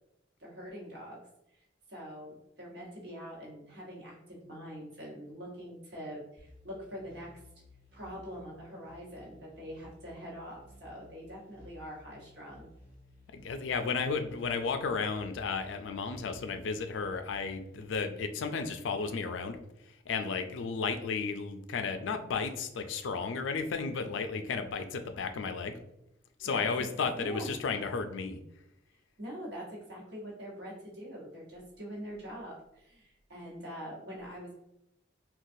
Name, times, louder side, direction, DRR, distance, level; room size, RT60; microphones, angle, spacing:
voice 1, 0.4-1.2 1.9-7.3 7.9-12.7 26.4-26.9 27.2-27.5 29.2-34.5, equal, 65° right, -5 dB, 1.2 m, -44 dB
sound 1, 6.4-17.9, left 1 dB, 10° right, 0.9 m, -57 dB
voice 2, 13.3-19.6 20.1-25.8 26.4-28.4, left 5 dB, 85° left, 8 dB, 0.4 m, -33 dB
3.8 x 2.4 x 2.6 m, 0.84 s
head